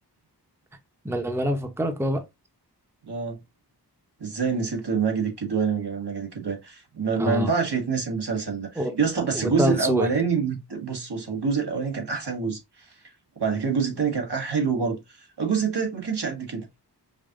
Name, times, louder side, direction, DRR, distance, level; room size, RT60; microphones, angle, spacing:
voice 1, 1.0-2.2 7.2-7.5 8.8-8.9 9.3-10.1, right 1 dB, 5° right, 0.7 m, -25 dB
voice 2, 3.1-3.4 4.2-12.6 13.4-15.0 15.4-16.6, right 5 dB, 75° right, 1.5 m, -26 dB
5.2 x 2.8 x 2.5 m
wide cardioid pair, 80°, 41 cm